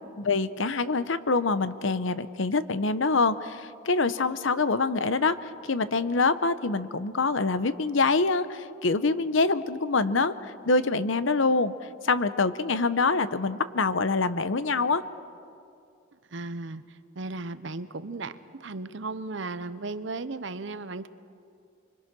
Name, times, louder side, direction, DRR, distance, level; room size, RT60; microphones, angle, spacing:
voice 1, 0.2-11.7 12.0-15.0, left 3 dB, 70° left, 14 dB, 0.8 m, -25 dB
voice 2, 16.3-16.8 17.2-21.1, right 3 dB, 60° right, 13 dB, 0.8 m, -35 dB
25.0 x 24.0 x 6.1 m, 2.5 s
head